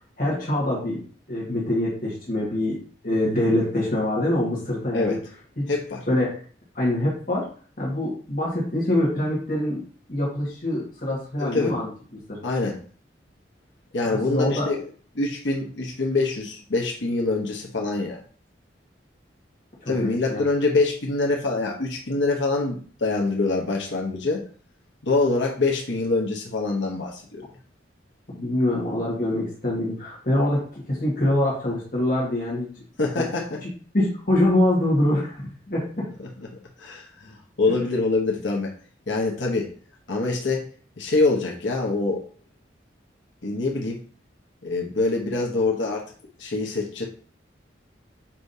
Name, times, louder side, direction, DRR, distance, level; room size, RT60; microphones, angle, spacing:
voice 1, 0.2-1.0 1.3-2.8 3.0-5.2 5.6-5.7 6.1-6.4 6.7-7.5 7.8-9.8 10.1-12.4 14.1-14.7 19.8-20.4 28.3-32.7 33.2-33.3 33.9-36.1, left 1 dB, 45° left, -5 dB, 1.8 m, -24 dB
voice 2, 5.7-6.1 11.4-11.8 12.4-12.8 13.9-14.8 15.1-18.2 19.9-24.4 25.0-27.5 33.0-33.5 36.2-36.5 36.8-38.7 39.1-39.7 40.1-40.7 41.0-42.2 43.4-44.0 44.6-46.0 46.4-47.1, left 3 dB, 85° left, 0 dB, 1.1 m, -25 dB
7.3 x 4.8 x 2.8 m, 0.43 s
head